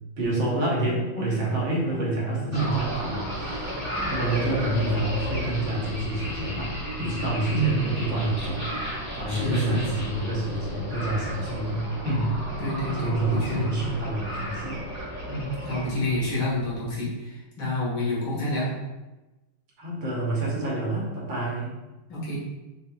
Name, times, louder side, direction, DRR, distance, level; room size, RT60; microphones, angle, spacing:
voice 1, 0.2-12.3 12.9-14.8 19.8-21.7, right 1 dB, 65° right, -4 dB, 1.9 m, -28 dB
sound 1, 2.5-16.9, equal, 10° right, 1.1 m, -34 dB
voice 2, 7.5-7.9 9.3-9.8 12.6-13.8 15.3-18.8 22.1-22.4, equal, 65° left, -7 dB, 2.2 m, -28 dB
5.9 x 3.8 x 2.4 m, 1.1 s
omnidirectional pair, 2.4 m